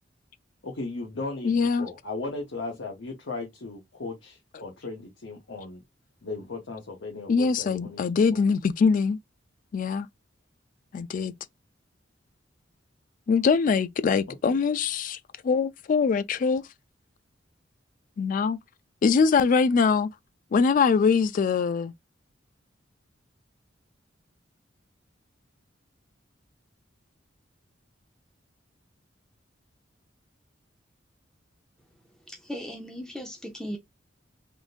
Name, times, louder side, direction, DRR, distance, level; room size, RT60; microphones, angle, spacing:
voice 1, 0.6-5.8 6.2-8.0 8.3-8.4 14.3-14.6, left 3 dB, 70° left, 0.9 m, -37 dB
voice 2, 1.4-1.9 7.3-9.2 9.7-10.1 10.9-11.3 13.3-16.6 18.2-18.6 19.0-20.1 20.5-21.9, left 5 dB, 45° left, 0.3 m, -23 dB
voice 3, 32.3-33.8, equal, 5° left, 0.7 m, -37 dB
3.6 x 2.6 x 2.4 m
head